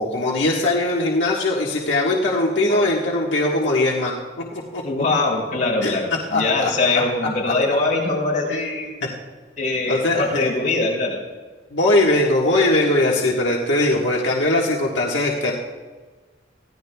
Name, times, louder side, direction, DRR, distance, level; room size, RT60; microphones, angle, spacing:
voice 1, 0.0-4.1 4.7-4.8 5.8-6.0 6.3-6.7 9.9-10.4 11.7-15.5, left 2 dB, 85° left, -3 dB, 1.5 m, -20 dB
voice 2, 4.8-9.0 9.6-11.2, left 3 dB, 45° left, -3 dB, 5.3 m, -22 dB
23.5 x 16.0 x 2.3 m, 1.4 s
head